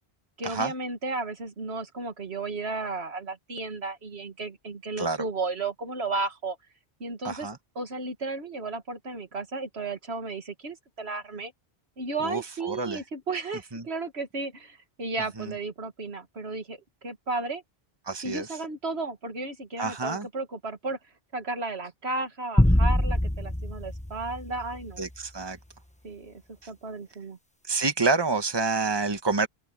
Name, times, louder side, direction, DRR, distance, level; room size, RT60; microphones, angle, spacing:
voice 1, 0.4-6.6 7.0-7.5 7.8-11.5 12.0-16.8 17.0-17.6 18.2-21.0 21.3-25.0 26.0-26.4 26.7-27.4, right 3 dB, 90° right, 2.2 m, -34 dB
voice 2, 7.2-7.6 12.2-13.0 13.7-13.8 15.4-15.5 18.1-18.5 19.8-20.3 25.0-25.6 26.6-26.7 27.7-29.5, right 3 dB, 25° right, 1.5 m, -28 dB
sound 1, 22.6-25.1, left 1 dB, 5° left, 1.2 m, -24 dB
open air
omnidirectional pair, 1.1 m